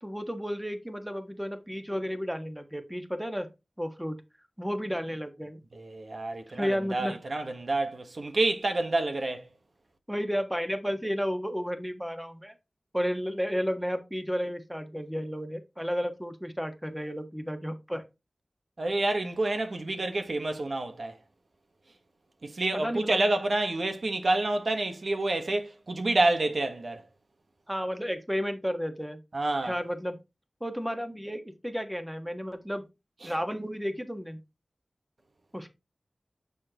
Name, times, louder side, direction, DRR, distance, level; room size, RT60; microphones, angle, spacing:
voice 1, 0.0-3.5 3.8-4.2 4.6-5.6 6.5-7.2 10.1-12.5 12.9-18.0 22.7-23.2 27.7-29.2 29.6-30.2 30.6-32.9 33.2-34.4 35.5-35.7, equal, 5° right, 1.5 m, -32 dB
voice 2, 5.8-9.4 18.8-21.2 22.4-27.0 29.3-29.7 33.2-33.3, right 2 dB, 65° right, 1.3 m, -28 dB
7.5 x 6.6 x 3.0 m
wide cardioid pair, 50°, 0 cm